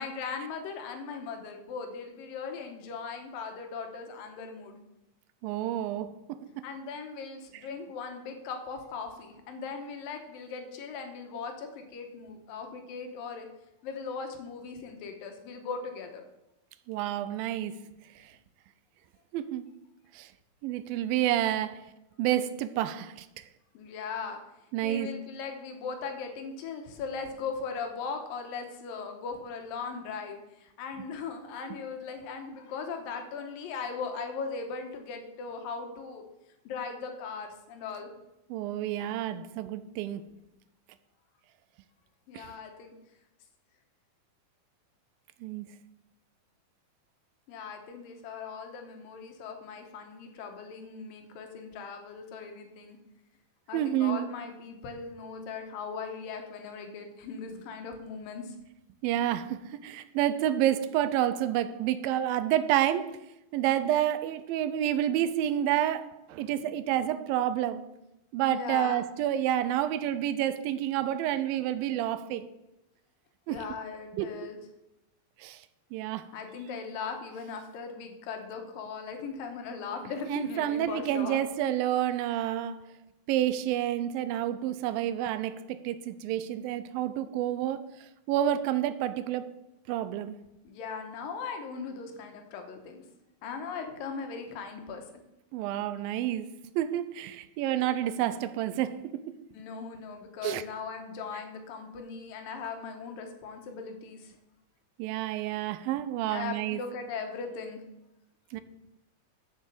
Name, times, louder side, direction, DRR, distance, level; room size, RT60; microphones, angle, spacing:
voice 1, 0.0-4.8 6.6-13.5 13.8-16.2 23.7-24.4 24.8-36.2 36.6-38.1 42.3-42.9 47.5-53.0 53.7-58.6 68.5-69.0 73.5-74.6 76.3-81.4 90.6-93.0 93.4-95.0 95.8-95.9 99.5-104.4 106.3-107.8, left 5 dB, 75° left, 2.8 m, -39 dB
voice 2, 5.4-6.7 16.9-17.8 18.2-18.3 19.3-19.7 20.1-20.3 20.6-21.9 22.2-23.4 24.7-25.1 38.5-40.3 42.3-42.5 45.4-45.7 53.7-54.3 59.0-67.9 68.3-72.5 73.5-73.7 74.1-74.5 75.4-75.6 75.9-76.3 80.3-82.9 83.3-89.5 89.9-90.4 95.5-96.5 96.8-99.3 100.4-100.6 105.0-106.8 108.5-108.6, right 11 dB, 80° right, 2.3 m, -29 dB
7.5 x 7.2 x 6.7 m
omnidirectional pair, 4.2 m